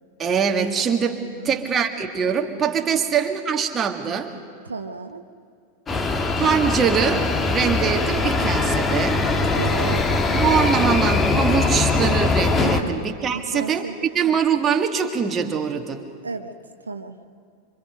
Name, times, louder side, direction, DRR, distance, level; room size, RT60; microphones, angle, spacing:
voice 1, 0.2-4.4 6.4-9.3 10.3-13.9 14.1-16.1, right 7 dB, 25° right, 4 dB, 1.8 m, -23 dB
voice 2, 1.3-1.8 2.9-3.0 4.6-5.2 9.5-10.1 12.6-12.9 13.3-14.1 16.2-16.5 16.9-17.2, right 4 dB, 75° right, 7 dB, 0.9 m, -33 dB
sound 1, 5.9-12.8, left 3 dB, 20° left, 1.6 m, -21 dB
26.0 x 25.5 x 5.3 m, 2.2 s
figure-of-eight pair, 90°, 0 cm